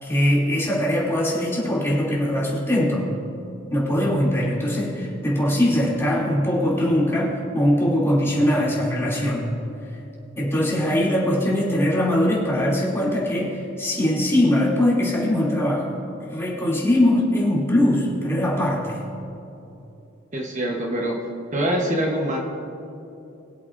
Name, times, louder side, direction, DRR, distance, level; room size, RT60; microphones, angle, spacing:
voice 1, 0.0-3.1 3.7-9.5 10.4-16.0 16.3-19.0, left 1 dB, 15° left, -6 dB, 2.9 m, -21 dB
voice 2, 20.3-21.2 21.5-22.4, right 1 dB, 40° right, -1 dB, 1.1 m, -24 dB
22.0 x 8.1 x 2.6 m, 2.9 s
head